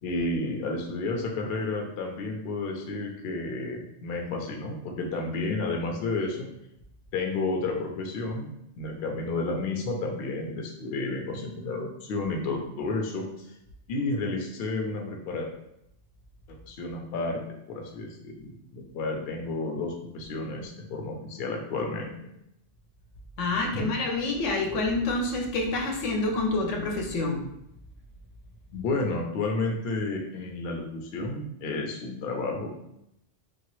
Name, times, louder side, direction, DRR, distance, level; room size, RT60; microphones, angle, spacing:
voice 1, 0.0-6.5 7.1-8.5 8.8-13.2 13.9-15.5 16.5-17.4 17.7-22.1 23.7-23.9 28.7-32.8, left 3 dB, 60° left, 1 dB, 0.7 m, -31 dB
voice 2, 23.4-27.4, left 2 dB, 90° left, 1 dB, 1.0 m, -27 dB
2.9 x 2.3 x 3.0 m, 0.80 s
omnidirectional pair, 1.2 m